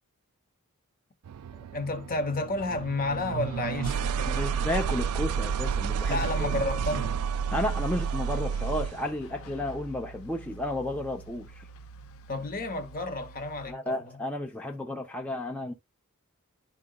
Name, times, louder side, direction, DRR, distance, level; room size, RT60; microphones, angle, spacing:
sound 1, 1.2-9.1, right 7 dB, 75° right, 0.4 m, -30 dB
voice 1, 1.7-4.5 6.1-7.2 12.3-14.2, left 2 dB, 40° left, 0.9 m, -31 dB
sound 2, 3.9-13.7, right 2 dB, 65° left, 0.6 m, -47 dB
voice 2, 4.2-6.5 7.5-11.7 13.7-15.7, left 1 dB, 5° left, 0.6 m, -32 dB
11.0 x 3.8 x 2.2 m
head